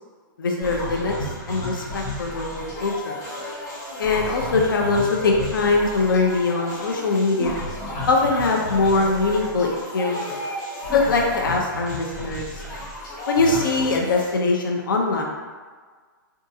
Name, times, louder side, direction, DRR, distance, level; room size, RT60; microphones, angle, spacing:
voice 1, 0.4-1.1 1.5-3.2 4.0-7.6 8.1-10.4 10.9-12.5 13.3-15.2, left 3 dB, 65° left, 0 dB, 0.7 m, -22 dB
sound 1, 0.6-14.3, equal, 25° left, 1.0 m, -32 dB
3.6 x 2.4 x 2.7 m, 1.5 s
hypercardioid pair, 180°, 12 cm